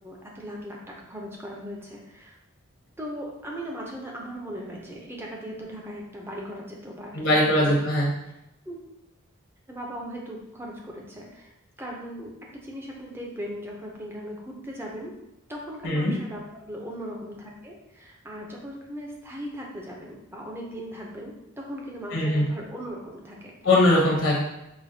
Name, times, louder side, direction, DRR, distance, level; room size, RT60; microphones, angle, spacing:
voice 1, 0.0-2.4 3.0-7.8 8.7-8.8 9.7-11.5 11.8-15.2 15.5-23.5, equal, 10° right, -2 dB, 0.5 m, -38 dB
voice 2, 7.1-8.1 15.8-16.1 22.1-22.4 23.6-24.4, left 1 dB, 65° left, -4 dB, 0.9 m, -21 dB
4.9 x 2.2 x 2.7 m, 0.89 s
head